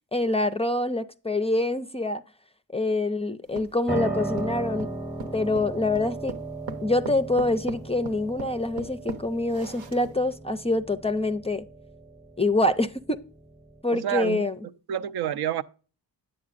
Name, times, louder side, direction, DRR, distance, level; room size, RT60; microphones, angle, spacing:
voice 1, 0.1-2.2 2.7-4.9 5.3-6.3 6.8-11.7 12.4-13.2 13.8-14.6, left 2 dB, 15° left, 0.4 m, -25 dB
sound 1, 3.5-10.3, right 4 dB, 80° right, 1.0 m, -39 dB
Piano, 3.9-13.8, right 2 dB, 5° right, 0.9 m, -36 dB
voice 2, 13.9-14.5 14.9-15.6, right 10 dB, 60° right, 0.5 m, -28 dB
9.3 x 7.5 x 2.4 m
supercardioid pair, 50°, 44 cm